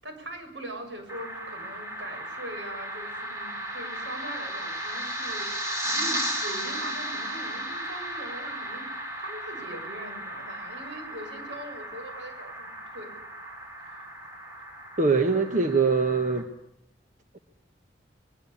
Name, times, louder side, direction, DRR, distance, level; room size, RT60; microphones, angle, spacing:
voice 1, 0.0-5.5 5.8-13.2, right 1 dB, 75° right, 5 dB, 7.0 m, -41 dB
sound 1, 1.1-16.4, right 1 dB, 15° right, 5.4 m, -35 dB
voice 2, 15.0-16.5, right 4 dB, 45° right, 6 dB, 1.2 m, -23 dB
22.5 x 22.0 x 8.6 m, 0.79 s
head